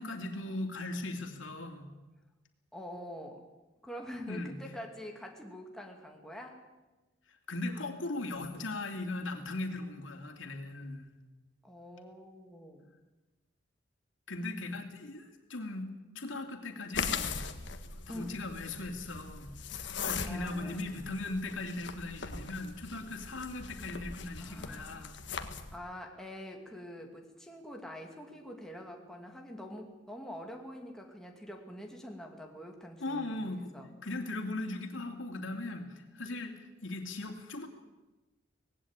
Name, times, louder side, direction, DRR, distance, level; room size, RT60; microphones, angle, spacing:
voice 1, 0.0-1.9 4.3-4.6 7.3-11.1 14.3-17.3 18.1-25.2 33.0-33.7 34.0-37.7, left 2 dB, 90° left, 4 dB, 2.7 m, -38 dB
voice 2, 2.7-3.5 3.8-6.6 11.6-12.9 18.1-18.3 20.2-20.8 24.4-25.1 25.7-33.5 33.7-33.9, equal, 5° left, 1 dB, 2.5 m, -45 dB
sound 1, 16.9-25.8, left 5 dB, 65° left, 1.5 m, -40 dB
19.0 x 16.5 x 8.9 m, 1.1 s
head